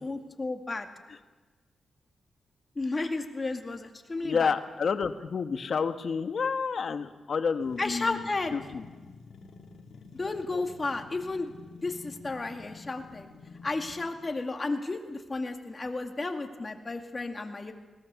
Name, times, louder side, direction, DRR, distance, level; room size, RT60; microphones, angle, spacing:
voice 1, 0.0-0.9 2.8-4.5 7.8-8.5 10.1-11.5 11.8-13.3 13.6-17.7, left 3 dB, 30° left, 4 dB, 2.2 m, -33 dB
voice 2, 4.2-8.8, left 5 dB, 60° left, 8 dB, 1.2 m, -30 dB
sound 1, 7.6-14.4, left 4 dB, 75° left, 2.1 m, -50 dB
21.0 x 18.0 x 7.0 m, 1.3 s
cardioid pair, 80°, 0 cm